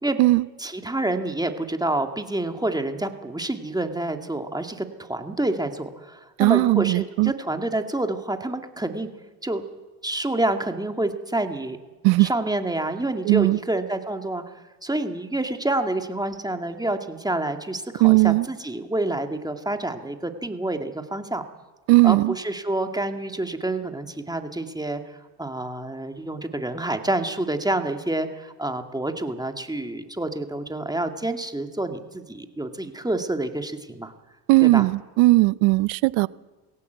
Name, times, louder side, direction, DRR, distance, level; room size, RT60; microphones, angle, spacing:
voice 1, 0.6-9.1 9.4-9.6 10.0-11.8 12.2-21.4 22.0-34.1 34.6-34.9, right 2 dB, 10° right, 6 dB, 2.1 m, -28 dB
voice 2, 6.4-7.3 12.0-12.3 13.3-13.6 18.0-18.5 21.9-22.3 34.5-36.3, right 22 dB, 75° right, 20 dB, 0.8 m, -18 dB
21.5 x 17.5 x 8.1 m, 1.2 s
supercardioid pair, 85°, 47 cm